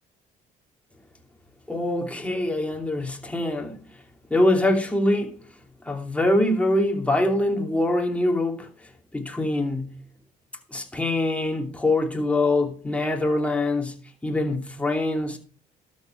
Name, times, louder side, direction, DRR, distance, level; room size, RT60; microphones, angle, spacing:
voice 1, 1.7-3.8 4.3-5.3 5.8-8.7 9.1-10.0 10.7-14.0 14.2-15.4, left 1 dB, 10° left, 2.8 m, -24 dB
13.0 x 7.3 x 4.7 m
cardioid pair, 110°, 17 cm